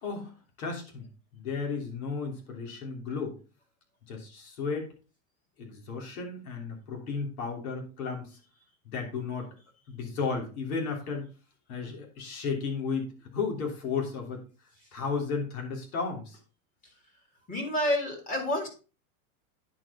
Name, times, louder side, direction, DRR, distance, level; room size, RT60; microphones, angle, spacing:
voice 1, 0.0-1.0 1.3-3.4 4.1-4.9 5.6-8.4 8.8-9.5 9.9-11.3 11.7-14.4 14.9-16.4, left 5 dB, 70° left, 1 dB, 3.2 m, -34 dB
voice 2, 17.5-18.7, left 1 dB, 20° left, 1 dB, 2.3 m, -28 dB
10.0 x 4.8 x 4.2 m, 0.33 s
supercardioid pair, 165°, 44 cm